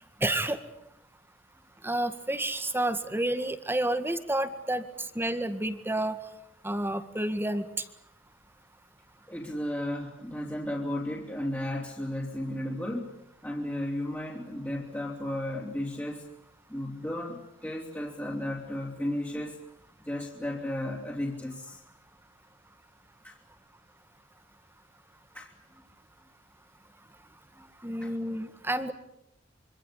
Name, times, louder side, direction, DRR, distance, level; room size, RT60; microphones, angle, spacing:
voice 1, 0.2-0.6 1.8-6.2 6.6-7.7 27.8-28.9, right 1 dB, 10° right, 10 dB, 1.9 m, -30 dB
voice 2, 9.3-13.2 13.4-16.2 16.7-19.6 20.0-21.8 23.2-23.4 25.3-25.5 28.0-28.1, left 1 dB, 10° left, -4 dB, 3.5 m, -34 dB
26.0 x 25.0 x 8.5 m, 0.80 s
head